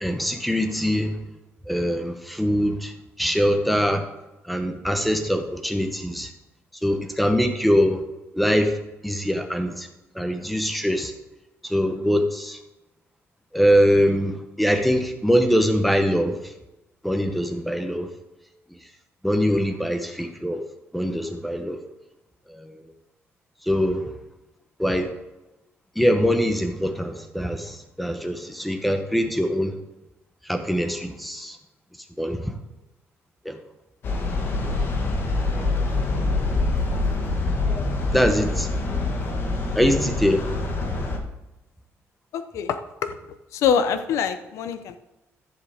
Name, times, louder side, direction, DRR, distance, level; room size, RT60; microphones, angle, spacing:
voice 1, 0.0-1.2 1.7-2.9 3.2-4.0 4.4-6.3 6.8-8.0 8.3-8.8 9.0-9.9 10.1-11.1 11.6-12.6 13.5-16.4 17.0-18.1 19.2-20.6 20.9-21.8 22.5-22.8 23.7-24.1 24.8-25.1 26.0-29.7 30.5-31.6 32.2-32.5 33.4-33.6 38.1-38.7 39.7-40.5, equal, ahead, 6 dB, 0.9 m, -23 dB
sound 1, 34.0-41.2, left 3 dB, 45° left, 1.4 m, -25 dB
voice 2, 42.3-43.1 43.5-45.0, left 7 dB, 75° left, 10 dB, 0.7 m, -24 dB
14.0 x 7.3 x 3.5 m, 0.98 s
cardioid pair, 165°, 5 cm